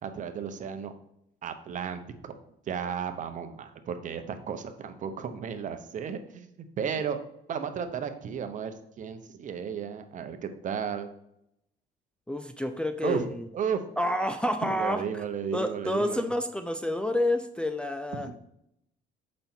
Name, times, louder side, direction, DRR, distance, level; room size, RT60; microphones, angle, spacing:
voice 1, 0.0-0.9 1.4-2.3 2.7-6.5 6.8-7.2 7.5-11.1 13.0-13.2 13.5-13.8 14.6-16.3 18.2-18.3, right 7 dB, 50° right, 8 dB, 0.9 m, -34 dB
voice 2, 12.3-13.5 14.0-15.2 15.5-18.4, left 1 dB, 5° left, 7 dB, 0.4 m, -29 dB
7.0 x 5.3 x 4.4 m, 0.78 s
cardioid pair, 110°, 17 cm